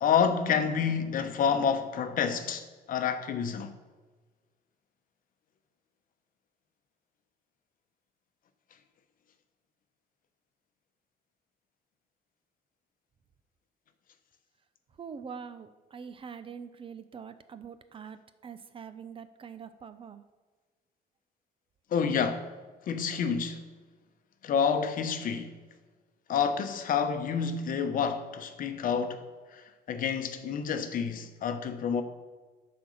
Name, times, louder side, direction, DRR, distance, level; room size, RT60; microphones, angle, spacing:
voice 1, 0.0-3.7 21.9-22.5 22.9-23.6 24.4-25.5 26.3-29.2 29.5-32.0, left 6 dB, 55° left, 0.9 m, -28 dB
voice 2, 15.0-20.2, right 6 dB, 30° right, 0.5 m, -44 dB
10.0 x 4.4 x 6.4 m
cardioid pair, 110°, 17 cm